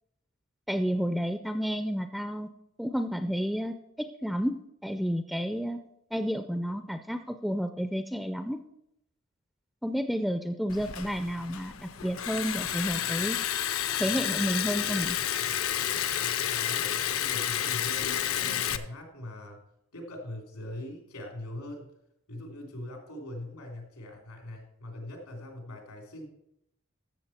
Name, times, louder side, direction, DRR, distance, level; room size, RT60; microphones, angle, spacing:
voice 1, 0.7-2.5 2.8-5.8 6.1-8.6 9.8-13.4 14.0-15.2, equal, ahead, 8 dB, 0.4 m, -31 dB
Liquid, 10.7-18.8, left 10 dB, 65° left, 0.5 m, -30 dB
voice 2, 16.5-19.6 19.9-21.9 22.3-26.3, left 1 dB, 90° left, 1 dB, 3.4 m, -42 dB
13.5 x 7.3 x 4.3 m, 0.79 s
head